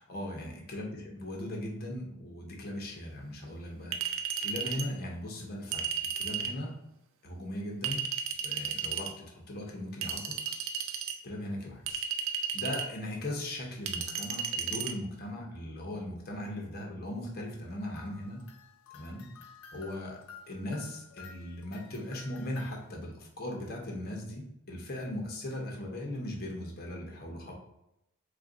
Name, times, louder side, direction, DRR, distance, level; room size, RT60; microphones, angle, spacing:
voice 1, 0.1-5.9 6.1-6.7 7.2-8.1 8.4-10.4 11.2-12.1 12.3-18.4 18.9-19.3 19.7-20.2 20.5-27.5, left 1 dB, 45° left, 0 dB, 0.8 m, -38 dB
Chink clink, 3.9-4.9 5.7-6.6 7.8-9.1 10.0-11.2 11.9-12.9 13.9-14.9, right 7 dB, 60° right, 0.3 m, -34 dB
sound 1, 18.0-23.0, left 5 dB, 75° left, 0.5 m, -53 dB
3.3 x 2.5 x 3.7 m, 0.85 s
head